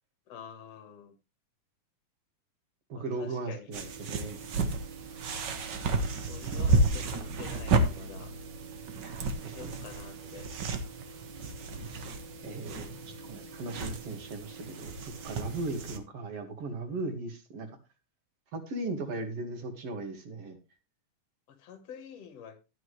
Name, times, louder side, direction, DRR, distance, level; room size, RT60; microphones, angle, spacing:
voice 1, 0.3-1.1 2.9-3.7 6.3-8.3 9.4-10.5 21.5-22.6, left 7 dB, 55° left, 9 dB, 2.3 m, -47 dB
voice 2, 2.9-4.4 9.0-9.7 11.8-12.1 12.4-17.7 18.5-20.6, right 2 dB, 50° right, 7 dB, 2.7 m, -38 dB
sound 1, 3.7-16.0, right 3 dB, 80° right, 0.9 m, -32 dB
12.0 x 9.7 x 3.1 m, 0.27 s
omnidirectional pair, 3.7 m